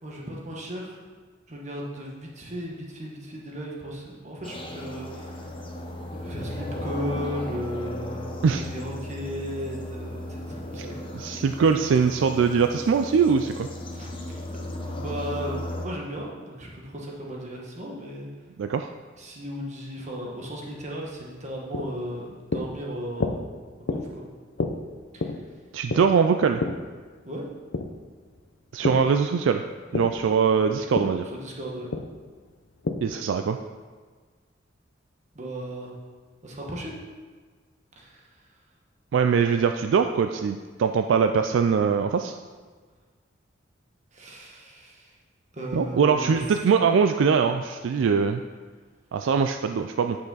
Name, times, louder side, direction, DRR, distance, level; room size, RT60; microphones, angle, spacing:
voice 1, 0.0-1.0 1.5-5.4 6.2-11.5 13.9-14.1 14.8-18.3 19.2-23.4 23.9-24.2 25.1-25.4 27.2-27.5 31.3-31.9 35.3-35.9 36.4-36.9 38.0-38.2 44.1-45.1 45.5-46.7, equal, 40° right, -2 dB, 1.4 m, -36 dB
sound 1, 4.4-15.9, left 1 dB, 25° left, 0.9 m, -36 dB
voice 2, 11.1-13.7 18.6-18.9 25.7-26.6 28.7-29.6 29.9-31.3 33.0-33.6 39.1-42.3 45.7-48.4 49.1-50.2, right 6 dB, 70° right, 7 dB, 0.3 m, -22 dB
sound 2, 21.2-29.1 29.4-33.3, left 3 dB, 65° left, 0.6 m, -32 dB
8.9 x 5.7 x 4.0 m, 1.5 s
head